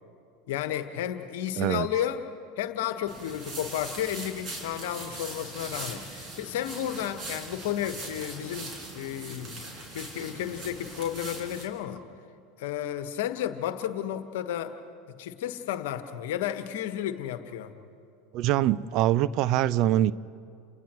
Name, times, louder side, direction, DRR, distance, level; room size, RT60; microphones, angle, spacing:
voice 1, 0.5-2.2 2.6-9.6 9.9-12.0 12.6-14.7 15.2-17.7, left 11 dB, 70° left, 9 dB, 1.3 m, -32 dB
voice 2, 1.6-1.9 18.3-20.1, right 13 dB, 55° right, 17 dB, 0.5 m, -24 dB
sound 1, 3.1-11.6, right 2 dB, 35° right, 5.4 m, -41 dB
29.5 x 29.0 x 3.1 m, 2.5 s
hypercardioid pair, 85°, 0 cm